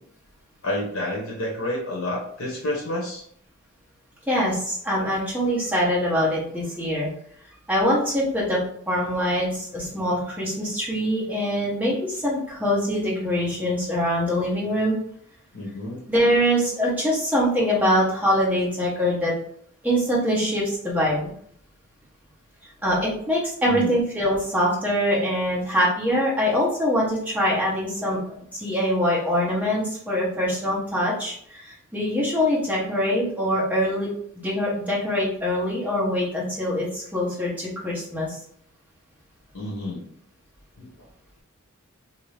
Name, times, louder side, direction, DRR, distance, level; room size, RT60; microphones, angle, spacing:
voice 1, 0.6-3.2 15.5-16.0 17.3-17.4 23.7-23.9 39.5-40.1 40.8-40.9, left 1 dB, 65° left, -2 dB, 0.8 m, -29 dB
voice 2, 4.3-7.1 7.7-8.6 8.9-15.0 16.1-19.3 19.8-21.3 22.8-28.2 28.5-34.1 34.4-38.4, equal, 5° right, -6 dB, 1.1 m, -23 dB
3.0 x 2.7 x 3.2 m, 0.63 s
head